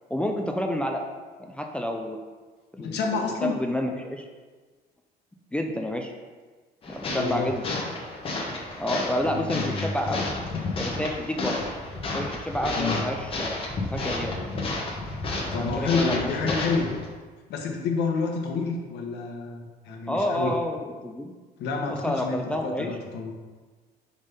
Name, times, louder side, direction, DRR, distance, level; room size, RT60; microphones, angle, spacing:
voice 1, 0.1-1.0 1.4-2.2 2.7-4.3 5.5-6.1 6.9-7.6 8.8-10.3 10.8-11.6 12.1-13.6 13.9-14.3 15.6-16.6 20.1-21.3 22.0-23.0, left 1 dB, 5° left, 2 dB, 0.4 m, -29 dB
voice 2, 2.8-3.5 7.1-7.5 9.2-9.9 12.7-13.0 15.5-16.9 17.5-20.5 21.6-22.4 22.6-23.3, left 4 dB, 75° left, 2 dB, 1.1 m, -29 dB
sound 1, 6.8-17.0, left 2 dB, 30° left, 1.1 m, -31 dB
5.2 x 3.5 x 5.5 m, 1.4 s
cardioid pair, 145°, 17 cm